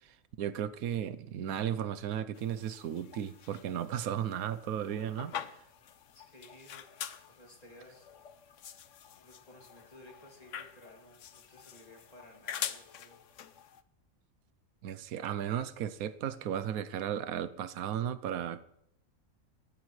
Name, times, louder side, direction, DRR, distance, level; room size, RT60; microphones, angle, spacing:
voice 1, 0.0-5.4 14.8-18.6, right 9 dB, 90° right, 15 dB, 1.2 m, -35 dB
sound 1, 2.3-13.8, left 9 dB, 65° left, 1.0 m, -45 dB
voice 2, 6.1-6.9 7.3-8.1 9.1-13.2, left 1 dB, 25° left, 0 dB, 2.7 m, -56 dB
19.0 x 13.5 x 3.2 m, 0.76 s
omnidirectional pair, 1.4 m